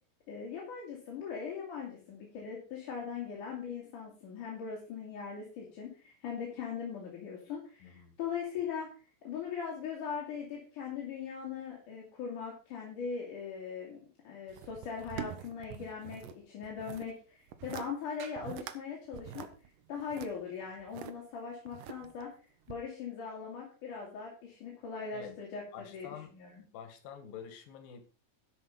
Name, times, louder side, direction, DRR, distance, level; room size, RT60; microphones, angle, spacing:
voice 1, 0.3-8.9 9.2-19.5 19.9-22.3 22.7-26.6, left 6 dB, 65° left, -3 dB, 3.8 m, -40 dB
voice 2, 7.8-8.2 25.1-25.4 25.7-26.3 26.7-28.0, left 8 dB, 90° left, 8 dB, 3.2 m, -47 dB
sound 1, 14.5-16.3 16.6-17.1 17.5-17.9 18.2-18.8 19.1-21.1 21.7-22.2 22.7-22.8, right 10 dB, 75° right, 2.4 m, -44 dB
12.0 x 5.8 x 5.2 m, 0.37 s
omnidirectional pair, 4.0 m